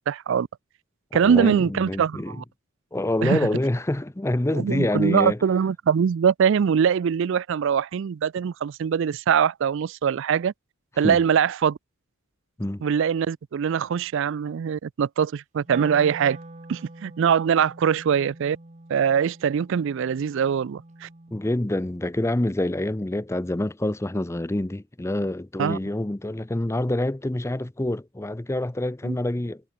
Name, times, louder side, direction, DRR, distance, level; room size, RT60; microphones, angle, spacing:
voice 1, 0.1-0.5 1.1-2.4 3.2-3.4 4.5-10.5 11.0-11.8 12.8-16.4 16.7-18.6 18.9-21.1 25.6-25.8 29.0-29.2, right 7 dB, 60° right, 0.4 m, -22 dB
voice 2, 1.2-2.3 2.9-5.4 11.0-11.2 12.6-12.8 21.3-29.7, left 1 dB, 15° left, 0.6 m, -26 dB
Wind instrument woodwind instrument, 15.6-21.7, right 2 dB, 35° right, 1.4 m, -44 dB
head